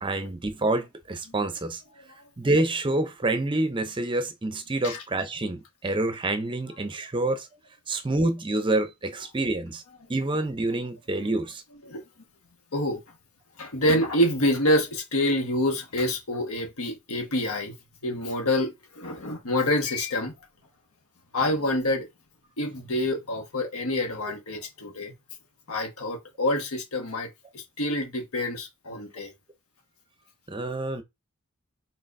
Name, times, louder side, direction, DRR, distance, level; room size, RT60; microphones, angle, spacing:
voice 1, 0.0-1.8 2.4-7.5 7.9-9.8 10.1-11.6 30.5-31.0, right 2 dB, 25° right, 0.6 m, -27 dB
voice 2, 13.6-17.7 18.0-20.3 21.3-22.1 22.6-25.1 25.7-27.3 27.5-29.3, left 1 dB, 85° left, 1.4 m, -27 dB
4.3 x 3.9 x 2.6 m
head